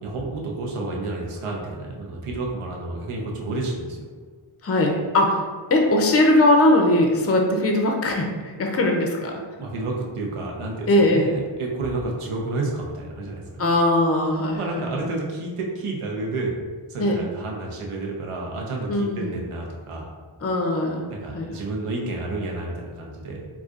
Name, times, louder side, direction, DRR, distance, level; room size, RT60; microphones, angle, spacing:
voice 1, 0.0-4.1 9.6-13.6 14.5-16.6 16.9-20.1 21.0-23.5, right 2 dB, 85° right, -1 dB, 0.7 m, -30 dB
voice 2, 4.6-5.4 5.7-9.4 10.9-11.3 13.6-14.8 17.0-17.2 18.9-19.4 20.4-21.1 21.3-21.5, left 1 dB, 30° left, 2 dB, 0.5 m, -20 dB
3.9 x 2.4 x 2.4 m, 1.5 s
wide cardioid pair, 85°, 50 cm